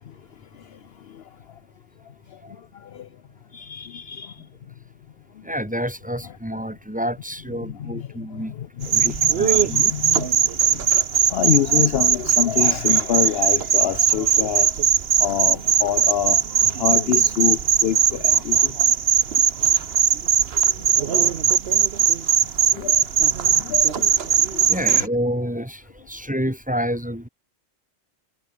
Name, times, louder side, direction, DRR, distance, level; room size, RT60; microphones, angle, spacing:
voice 1, 2.7-3.1 3.5-4.4 6.2-6.3 7.6-14.7 15.2-18.7 22.7-23.1 23.5-25.1, left 10 dB, 65° left, 0.8 m, -27 dB
voice 2, 5.4-8.5 8.8-9.9 24.7-27.3, equal, 5° right, 3.7 m, -28 dB
sound 1, 8.8-25.1, right 7 dB, 60° right, 1.2 m, -19 dB
omnidirectional pair, 1.2 m